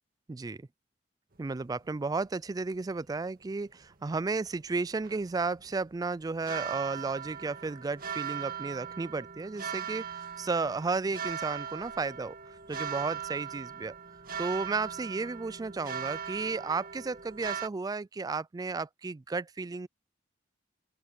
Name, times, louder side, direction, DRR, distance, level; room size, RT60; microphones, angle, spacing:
voice 1, 0.3-0.7 1.4-12.4 12.7-13.9 14.4-19.9, right 4 dB, 20° right, 0.3 m, -33 dB
sound 1, 1.3-17.7, right 8 dB, 55° right, 1.9 m, -40 dB
open air
head